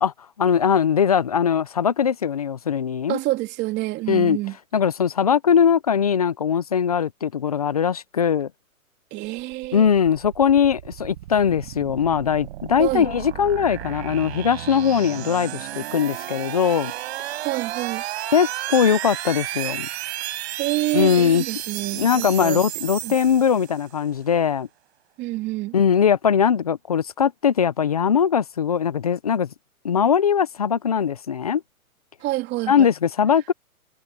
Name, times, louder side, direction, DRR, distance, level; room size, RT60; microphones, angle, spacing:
voice 1, 0.4-3.2 4.1-4.4 4.7-8.5 9.7-16.9 18.3-19.9 20.9-21.4 22.0-24.7 25.7-29.5 29.8-31.6 32.7-33.5, left 7 dB, 30° left, 0.3 m, -20 dB
voice 2, 3.1-4.6 9.1-9.9 12.8-13.1 17.4-18.0 20.6-22.6 23.0-23.2 25.2-25.7 32.2-32.9, right 18 dB, 25° right, 3.0 m, -27 dB
sound 1, 9.4-23.9, right 14 dB, 50° right, 7.0 m, -33 dB
hypercardioid pair, 145°, 42 cm